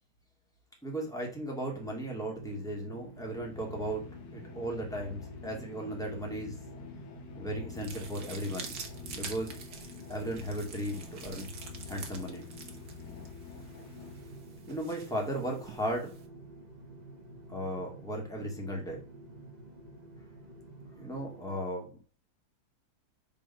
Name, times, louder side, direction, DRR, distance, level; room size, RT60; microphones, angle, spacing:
voice 1, 0.8-6.6 7.4-8.7 9.1-9.6 10.1-11.5 11.9-12.5 14.7-16.2 17.5-19.0 21.0-22.0, right 1 dB, ahead, -1 dB, 1.9 m, -36 dB
sound 1, 1.8-21.6, right 1 dB, 30° right, 0.8 m, -50 dB
sound 2, 3.1-14.8, left 7 dB, 70° left, 1.7 m, -48 dB
sound 3, 7.7-16.3, right 5 dB, 50° right, 1.4 m, -47 dB
5.4 x 4.2 x 5.5 m, 0.32 s
omnidirectional pair, 2.3 m